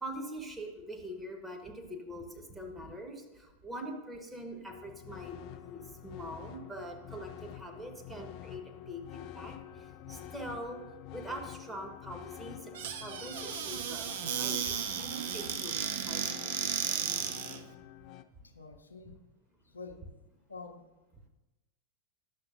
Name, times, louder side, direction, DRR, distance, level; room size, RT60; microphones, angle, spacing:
voice 1, 0.0-9.6 10.1-10.8 11.1-12.7 13.0-14.1 14.4-17.0, right 1 dB, 10° right, 2 dB, 1.1 m, -43 dB
sound 1, 4.7-18.2, left 11 dB, 40° left, 0.3 m, -48 dB
Squeak / Cupboard open or close, 12.7-17.6, right 9 dB, 55° right, 0.5 m, -34 dB
voice 2, 18.4-19.2 19.6-20.0 20.5-20.8, left 4 dB, 75° left, 5 dB, 0.7 m, -47 dB
10.5 x 6.6 x 2.5 m, 1.1 s
figure-of-eight pair, 90°, 0 cm